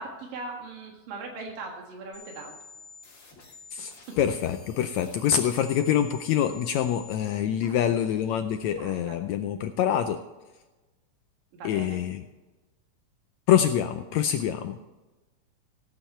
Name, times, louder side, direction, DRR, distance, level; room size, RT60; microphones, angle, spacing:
voice 1, 0.0-2.6 3.8-3.9 7.6-7.9 8.8-9.2 11.5-12.0 14.4-14.6, right 3 dB, 90° right, 1 dB, 3.4 m, -40 dB
sound 1, 2.1-7.1, left 4 dB, 40° left, 3.7 m, -49 dB
voice 2, 3.7-10.2 11.6-12.2 13.5-14.8, left 9 dB, 85° left, 8 dB, 1.6 m, -25 dB
17.0 x 8.6 x 4.3 m, 1.1 s
omnidirectional pair, 3.8 m